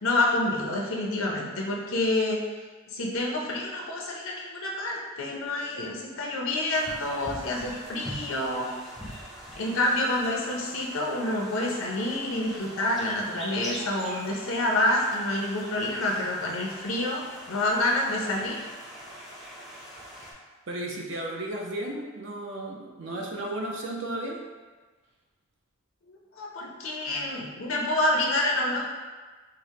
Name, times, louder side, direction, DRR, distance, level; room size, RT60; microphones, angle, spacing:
voice 1, 0.0-2.4 2.9-8.7 9.6-17.2 17.5-18.6 26.1-28.8, left 1 dB, 80° left, -2 dB, 0.6 m, -28 dB
sound 1, 6.7-20.3, equal, ahead, 0.5 m, -43 dB
voice 2, 20.7-24.4, right 1 dB, 60° right, 0 dB, 0.5 m, -34 dB
4.7 x 2.0 x 2.7 m, 1.3 s
head